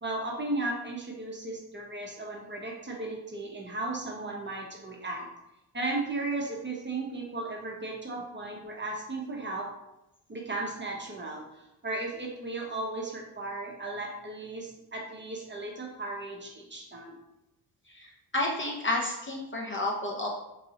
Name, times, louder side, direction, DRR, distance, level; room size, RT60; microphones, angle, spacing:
voice 1, 0.0-5.3 5.7-9.7 10.3-11.4 11.8-17.2, right 2 dB, 25° right, -1 dB, 0.7 m, -35 dB
voice 2, 17.9-20.3, left 1 dB, 25° left, -1 dB, 0.6 m, -31 dB
3.1 x 2.6 x 2.8 m, 0.90 s
cardioid pair, 65°, 46 cm